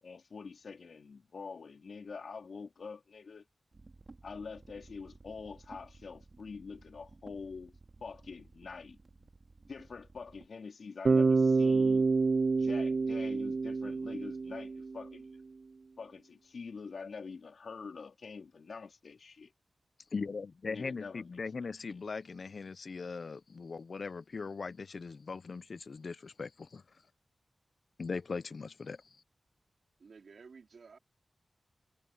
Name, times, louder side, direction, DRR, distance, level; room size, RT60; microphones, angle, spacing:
voice 1, 0.0-3.5 4.2-7.7 8.0-9.3 9.7-12.1 12.6-15.4 16.0-19.5 20.7-21.3 21.6-21.7, left 5 dB, 85° left, 3.4 m, -45 dB
sound 1, 3.7-10.5, right 3 dB, 45° right, 2.8 m, -56 dB
Bass guitar, 11.0-15.1, right 4 dB, 65° right, 0.3 m, -28 dB
voice 2, 20.1-26.8 28.0-29.0, left 4 dB, 70° left, 0.4 m, -40 dB
voice 3, 30.0-31.0, right 5 dB, 85° right, 4.1 m, -53 dB
wide cardioid pair, 85°, 0 cm